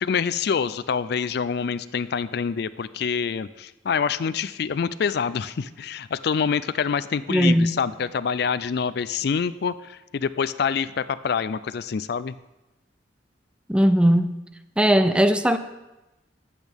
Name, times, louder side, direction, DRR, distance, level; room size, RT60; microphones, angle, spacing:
voice 1, 0.0-12.3, left 6 dB, 60° left, 15 dB, 0.4 m, -26 dB
voice 2, 7.3-7.8 13.7-14.3 14.8-15.6, equal, 5° right, 10 dB, 0.5 m, -18 dB
20.5 x 8.3 x 3.5 m, 1.0 s
head